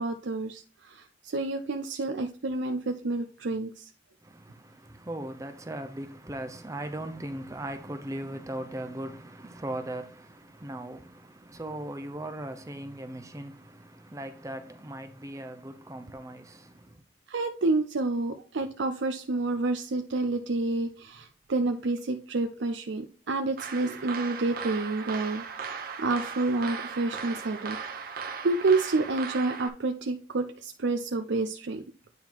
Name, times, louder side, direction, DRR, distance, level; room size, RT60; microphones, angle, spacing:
voice 1, 0.0-3.9 17.3-27.8 28.4-31.8, right 3 dB, 75° right, 0.6 m, -29 dB
voice 2, 4.2-17.0, right 1 dB, 15° right, 0.5 m, -39 dB
sound 1, 23.6-29.7, right 6 dB, 50° right, 0.9 m, -37 dB
9.3 x 3.7 x 4.5 m
head